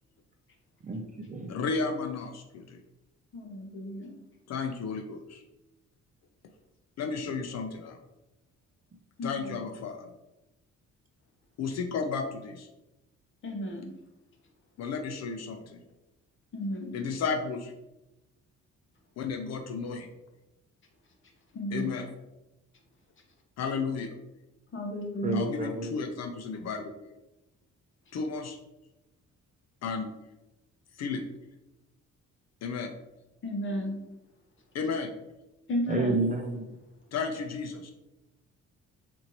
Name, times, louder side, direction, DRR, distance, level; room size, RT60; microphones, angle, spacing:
voice 1, 0.8-1.5 25.2-26.0 35.9-36.7, right 2 dB, 25° right, 4 dB, 0.6 m, -30 dB
voice 2, 1.5-2.8 4.5-5.4 7.0-8.0 9.2-10.1 11.6-12.7 14.8-15.8 16.9-17.7 19.2-20.1 21.7-22.1 23.6-24.2 25.3-26.9 28.1-28.6 29.8-30.1 31.0-31.2 32.6-32.9 34.7-35.1 37.1-37.9, left 5 dB, 60° left, 5 dB, 0.5 m, -33 dB
voice 3, 3.3-4.2 9.2-9.6 13.4-14.0 16.5-17.0 21.5-22.0 24.7-25.6 33.4-34.1 35.7-36.2, equal, 40° left, 2 dB, 0.9 m, -33 dB
4.3 x 2.6 x 2.9 m, 0.98 s
cardioid pair, 90°, 30 cm